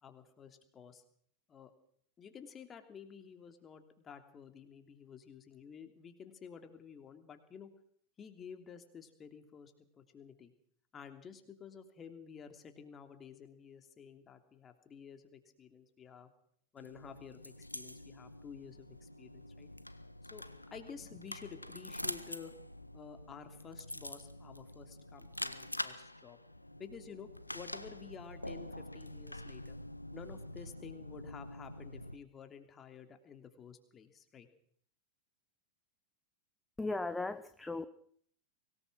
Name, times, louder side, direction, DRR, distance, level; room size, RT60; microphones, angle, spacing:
voice 1, 0.0-1.0 1.5-1.7 2.2-7.7 8.2-10.5 10.9-16.3 16.7-19.7 20.3-20.4 20.7-22.5 22.9-26.4 26.8-29.8 30.1-34.5, left 7 dB, 25° left, 7 dB, 3.0 m, -52 dB
sound 1, 16.8-32.2, left 1 dB, 85° left, 1.1 m, -46 dB
voice 2, 36.8-37.9, left 2 dB, 5° left, 11 dB, 1.0 m, -37 dB
24.5 x 18.0 x 6.2 m, 0.62 s
figure-of-eight pair, 90°, 0 cm